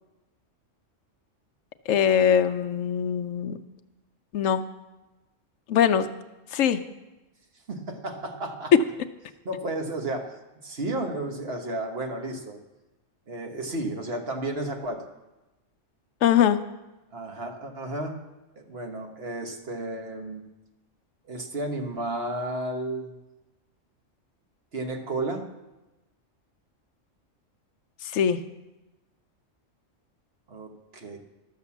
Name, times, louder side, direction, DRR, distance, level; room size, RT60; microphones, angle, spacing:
voice 1, 1.9-3.6 4.3-4.6 5.7-6.1 6.5-6.8 16.2-16.6 28.1-28.4, left 8 dB, 80° left, 8 dB, 1.0 m, -22 dB
voice 2, 7.7-8.7 9.4-10.3 10.6-12.6 13.3-15.1 17.1-18.2 18.5-20.4 21.3-23.1 24.7-25.5 30.5-31.2, right 2 dB, 50° right, 4 dB, 1.4 m, -32 dB
13.0 x 6.6 x 7.1 m, 1.1 s
omnidirectional pair, 1.3 m